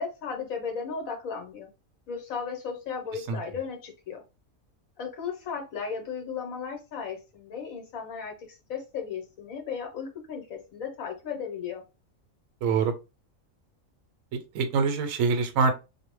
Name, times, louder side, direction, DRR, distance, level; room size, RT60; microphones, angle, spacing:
voice 1, 0.0-1.7 2.1-4.2 5.0-11.8, left 6 dB, 80° left, 2 dB, 1.3 m, -35 dB
voice 2, 12.6-12.9 14.3-15.7, right 5 dB, 80° right, 6 dB, 1.0 m, -25 dB
2.7 x 2.1 x 3.0 m, 0.28 s
omnidirectional pair, 1.4 m